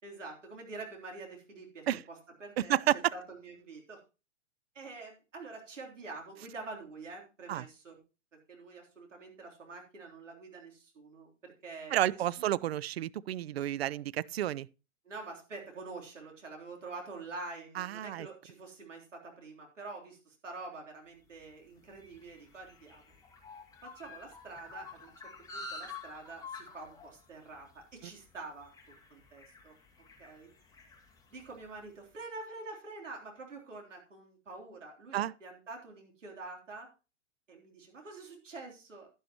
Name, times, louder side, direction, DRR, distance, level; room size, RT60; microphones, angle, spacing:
voice 1, 0.0-2.8 3.1-4.0 4.8-8.0 8.5-12.5 15.0-23.2 23.8-28.7 29.1-29.7 30.2-30.5 31.3-36.9 37.5-39.2, right 3 dB, 70° right, 3.6 m, -46 dB
voice 2, 2.6-3.0 7.5-7.6 11.9-14.7 17.8-18.3 35.1-35.3, right 12 dB, 55° right, 0.4 m, -31 dB
sound 1, 21.3-31.9, left 3 dB, 10° left, 1.4 m, -50 dB
11.0 x 10.5 x 3.0 m
figure-of-eight pair, 115°, 38 cm